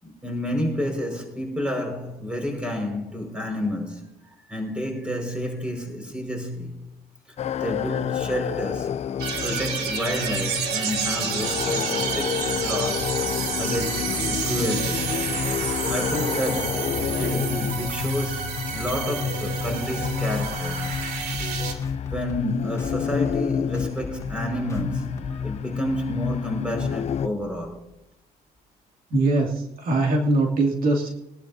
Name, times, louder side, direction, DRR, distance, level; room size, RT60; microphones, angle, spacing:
voice 1, 0.0-4.1 4.5-6.9 7.5-9.0 9.4-13.3 13.6-15.2 15.6-20.9 21.7-27.8, equal, 5° right, 5.2 m, -30 dB
sound 1, 7.4-27.3, left 8 dB, 40° left, 0.5 m, -29 dB
sound 2, 9.2-21.7, right 5 dB, 75° right, 2.9 m, -29 dB
sound 3, 13.2-13.3 14.1-14.2 15.1-15.2 16.1-16.2 17.0-17.1 18.0-18.1 18.9-19.0 19.9-20.0 20.4-20.6 20.9-21.1 21.3-21.6 21.8-22.5 22.8-23.0 23.3-23.5 23.7-25.6, left 3 dB, 20° left, 1.9 m, -40 dB
voice 2, 29.1-31.1, right 2 dB, 60° right, 2.5 m, -22 dB
22.5 x 11.5 x 2.7 m
cardioid pair, 110°, 17 cm